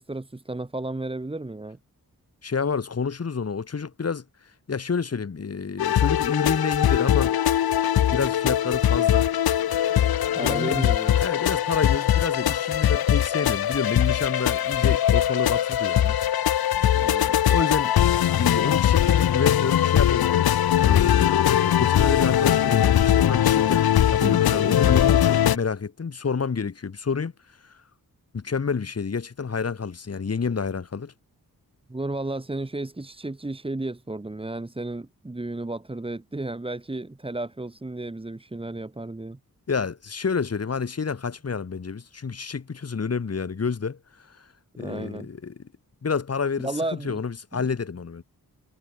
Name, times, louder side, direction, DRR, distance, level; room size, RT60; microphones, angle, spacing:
voice 1, 0.0-1.8 10.3-11.2 16.8-17.4 24.2-24.4 31.9-39.4 44.8-45.3 46.6-47.1 47.5-47.6, right 2 dB, 15° right, 3.2 m, -33 dB
voice 2, 2.4-4.2 4.7-7.3 8.1-9.3 10.3-10.9 11.2-16.2 17.5-17.9 18.3-27.3 27.6-27.8 28.3-31.1 39.7-44.5 44.8-45.5 46.0-48.2, left 5 dB, 45° left, 4.7 m, -29 dB
sound 1, 5.8-25.6, left 11 dB, 85° left, 0.9 m, -21 dB
wide cardioid pair, 175°, 36 cm